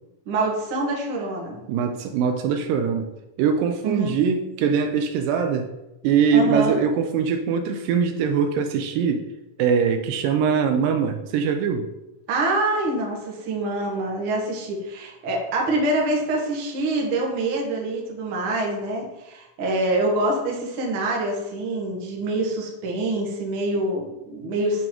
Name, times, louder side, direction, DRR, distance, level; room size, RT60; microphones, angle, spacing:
voice 1, 0.3-1.6 3.8-4.2 6.3-6.8 12.3-24.9, right 2 dB, 65° right, -1 dB, 1.3 m, -25 dB
voice 2, 1.7-3.1 3.4-5.7 6.0-9.3 9.6-11.9, right 6 dB, 80° right, 6 dB, 2.1 m, -22 dB
8.9 x 3.7 x 3.0 m, 0.96 s
omnidirectional pair, 4.0 m